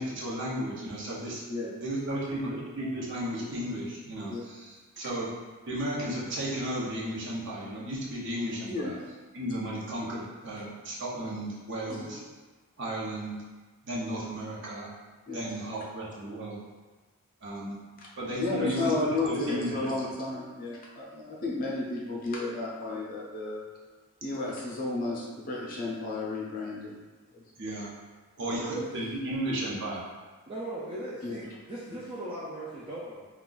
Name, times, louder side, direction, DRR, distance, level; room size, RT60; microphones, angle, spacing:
voice 1, 0.0-5.3 5.7-9.0 9.3-12.2 12.8-13.4 13.8-14.9 15.3-16.6 17.4-17.7 18.2-18.9 19.2-19.9 27.6-27.9 28.4-30.0, right 1 dB, 55° right, -5 dB, 0.7 m, -34 dB
voice 2, 8.7-9.0 11.9-12.1 15.3-15.4 18.0-18.1 18.4-23.6 24.2-26.9 27.3-27.4 31.2-31.4, left 2 dB, 40° left, -3 dB, 0.5 m, -32 dB
voice 3, 28.4-29.0 30.5-33.3, right 1 dB, 25° right, -7 dB, 0.4 m, -38 dB
2.4 x 2.3 x 3.8 m, 1.3 s
head